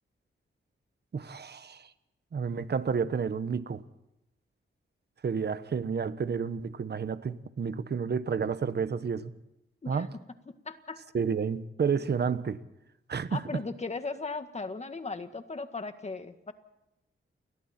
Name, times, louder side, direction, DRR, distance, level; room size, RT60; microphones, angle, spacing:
voice 1, 1.1-1.9 2.3-3.8 5.2-9.3 9.9-10.1 11.1-12.6 13.1-13.6, right 6 dB, 50° right, 1.3 m, -30 dB
voice 2, 10.5-11.0 13.3-16.5, left 3 dB, 30° left, 1.7 m, -37 dB
29.5 x 22.5 x 4.4 m
wide cardioid pair, 130°, 21 cm